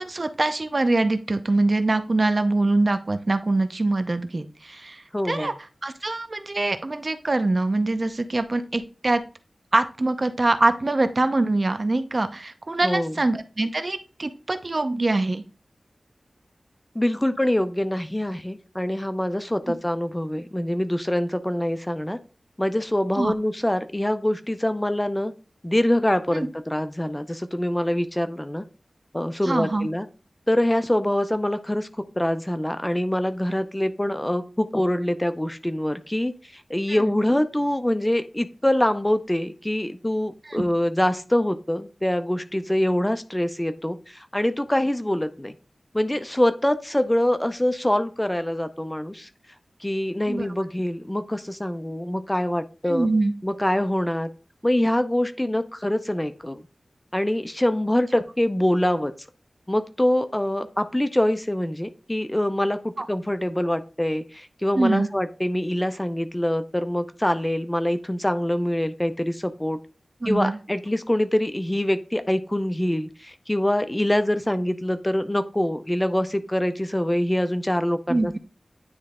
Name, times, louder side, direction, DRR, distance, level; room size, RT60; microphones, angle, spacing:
voice 1, 0.0-5.5 5.8-9.2 9.7-15.4 23.1-23.3 26.3-26.5 29.4-29.9 36.9-37.2 40.5-40.7 50.3-50.5 52.9-53.3 63.0-63.1 64.8-65.1 70.2-70.6 78.1-78.4, right 2 dB, 45° right, 10 dB, 0.6 m, -24 dB
voice 2, 5.1-5.5 12.8-13.2 16.9-22.2 22.6-25.3 25.6-28.6 29.1-30.1 30.5-31.9 32.1-45.5 45.9-49.3 49.8-53.1 53.4-54.3 54.6-56.6 57.1-59.1 59.7-69.8 70.3-78.4, left 1 dB, 15° left, 11 dB, 0.5 m, -24 dB
9.6 x 3.2 x 3.6 m, 0.35 s
wide cardioid pair, 75°, 0 cm